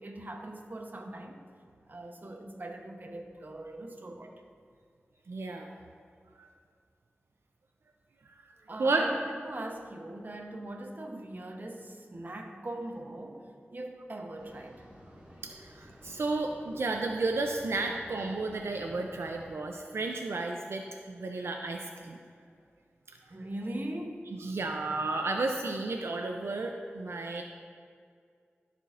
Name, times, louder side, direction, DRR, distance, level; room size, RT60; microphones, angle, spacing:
voice 1, 0.0-1.4 1.9-4.3 8.7-14.9 23.3-24.3, right 1 dB, 45° right, 3 dB, 0.8 m, -41 dB
voice 2, 5.3-5.7 6.4-6.5 8.3-8.4 8.8-9.1 15.4-22.2 24.4-27.4, right 3 dB, 85° right, 2 dB, 0.4 m, -32 dB
sound 1, 14.4-19.5, equal, 25° right, 1.9 m, -52 dB
13.5 x 5.0 x 2.5 m, 2.1 s
wide cardioid pair, 60°, 4 cm